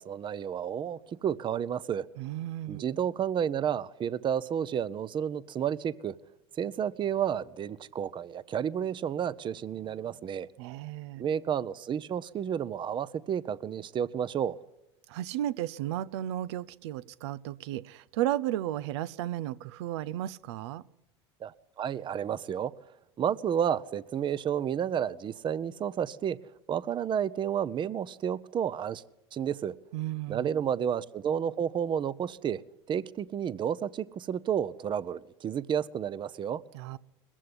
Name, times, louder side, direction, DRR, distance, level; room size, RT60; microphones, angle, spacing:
voice 1, 0.0-2.1 2.7-6.2 6.6-10.5 11.2-14.5 21.4-21.5 21.8-22.7 23.2-26.4 26.7-29.0 29.3-29.7 30.3-32.6 32.9-36.6, right 8 dB, 35° right, 0.8 m, -31 dB
voice 2, 2.2-2.8 10.6-11.3 15.1-20.8 29.9-30.6 36.7-37.0, right 13 dB, 80° right, 0.7 m, -34 dB
20.5 x 15.0 x 9.8 m
supercardioid pair, 100°, 14 cm